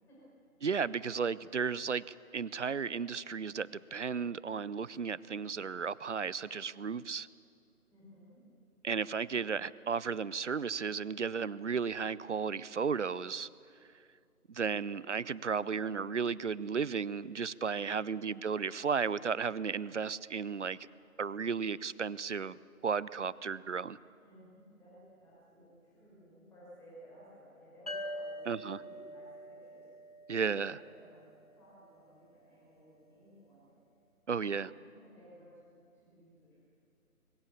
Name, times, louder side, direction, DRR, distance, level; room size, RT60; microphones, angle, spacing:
voice 1, 0.6-7.3 8.8-13.5 14.5-20.8 21.2-22.6 22.8-24.0 28.5-28.8 30.3-30.8 34.3-34.7, right 6 dB, 55° right, 21 dB, 0.5 m, -34 dB
voice 2, 7.9-8.4 24.2-29.8 30.4-33.7 34.3-36.6, equal, 5° left, -8 dB, 5.6 m, -57 dB
sound 1, 27.9-31.3, equal, 25° left, 0.7 m, -44 dB
23.0 x 19.5 x 6.9 m, 2.4 s
figure-of-eight pair, 155°, 44 cm